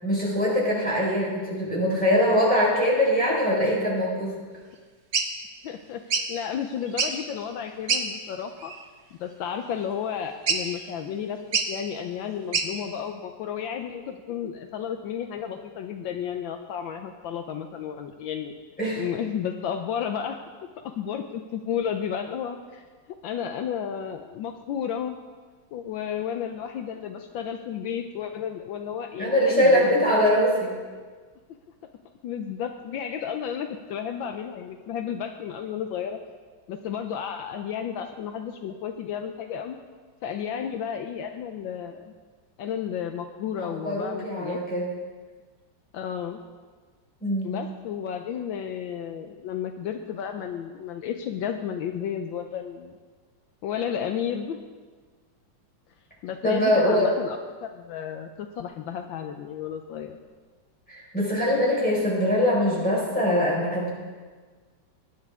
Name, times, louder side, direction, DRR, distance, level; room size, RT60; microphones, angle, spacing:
voice 1, 0.0-4.3 18.8-19.0 29.2-30.7 43.6-44.9 47.2-47.5 56.4-57.1 60.9-63.9, equal, 5° left, -6 dB, 4.8 m, -23 dB
sound 1, 5.1-5.3 6.1-6.3 6.9-7.3 7.9-8.1 8.6-8.8 10.5-10.8 11.5-11.7 12.5-12.7, right 5 dB, 50° right, 1.1 m, -26 dB
voice 2, 5.6-8.7 9.2-11.4 11.7-18.5 19.0-20.4 20.8-22.9 23.2-25.2 25.7-30.1 32.2-36.2 36.7-39.8 40.2-42.1 42.6-44.6 45.9-46.4 47.4-53.0 53.6-54.6 56.2-60.2, left 8 dB, 75° left, 6 dB, 1.4 m, -32 dB
19.5 x 10.5 x 3.6 m, 1.5 s
omnidirectional pair, 2.2 m